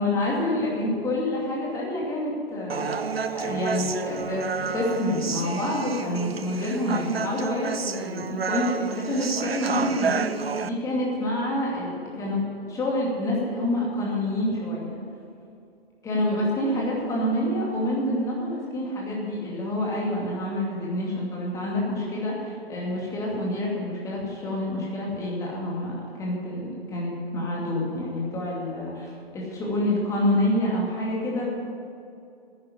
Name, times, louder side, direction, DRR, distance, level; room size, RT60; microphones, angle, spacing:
voice 1, 0.0-4.4 4.7-12.4 12.7-15.0 16.0-31.5, left 1 dB, 10° left, -4 dB, 2.5 m, -27 dB
Human voice, 2.7-10.7, right 6 dB, 75° right, 0.7 m, -30 dB
11.0 x 9.6 x 9.8 m, 2.5 s
figure-of-eight pair, 130°, 31 cm